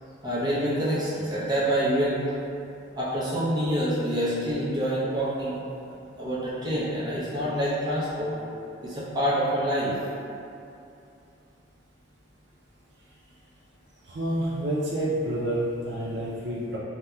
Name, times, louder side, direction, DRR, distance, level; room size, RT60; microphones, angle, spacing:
voice 1, 0.2-2.2 2.9-5.6 6.2-8.3 8.8-10.0, equal, 20° right, -10 dB, 0.7 m, -26 dB
voice 2, 14.1-16.8, right 1 dB, 65° right, -6 dB, 0.4 m, -28 dB
3.2 x 2.7 x 2.3 m, 2.6 s
head